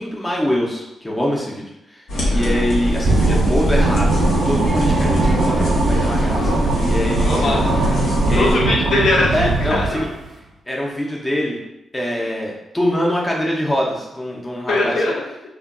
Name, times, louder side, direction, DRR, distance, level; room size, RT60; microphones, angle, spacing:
voice 1, 0.0-7.6 8.2-8.7 9.3-10.1 10.7-11.6 11.9-15.0, left 1 dB, 10° left, -3 dB, 0.5 m, -24 dB
sound 1, 2.1-8.5, equal, 80° left, 0.9 m, -21 dB
sound 2, 3.0-10.3, right 3 dB, 55° right, 0.4 m, -21 dB
voice 2, 7.2-7.6 8.3-10.1 14.7-15.5, left 2 dB, 60° left, -1 dB, 0.5 m, -21 dB
2.2 x 2.2 x 3.5 m, 0.89 s
wide cardioid pair, 150°, 0 cm